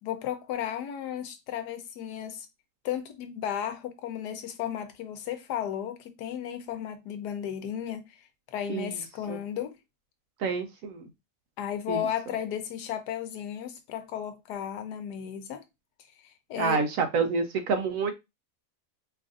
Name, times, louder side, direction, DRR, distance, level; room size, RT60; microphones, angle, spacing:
voice 1, 0.0-2.5 2.8-9.8 11.6-15.6 16.5-16.8, left 9 dB, 90° left, 1.3 m, -34 dB
voice 2, 10.4-11.1 11.9-12.0 16.5-18.1, right 5 dB, 70° right, 0.9 m, -28 dB
4.6 x 2.5 x 2.4 m
omnidirectional pair, 1.7 m